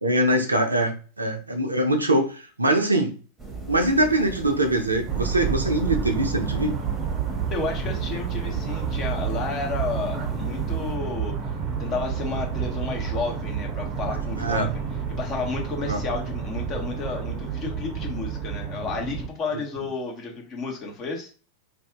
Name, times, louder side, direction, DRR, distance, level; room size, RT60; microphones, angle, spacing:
voice 1, 0.0-3.2 3.7-6.7 14.4-14.7 15.8-16.0, right 1 dB, 80° right, 6 dB, 0.6 m, -23 dB
sound 1, 3.4-11.0, right 4 dB, 10° right, 1.1 m, -37 dB
sound 2, 5.1-19.3, right 7 dB, 30° right, 0.7 m, -30 dB
voice 2, 7.5-11.3 11.8-14.8 15.1-21.3, left 4 dB, 30° left, 0 dB, 1.1 m, -32 dB
2.7 x 2.4 x 3.6 m, 0.37 s
figure-of-eight pair, 90°, 0 cm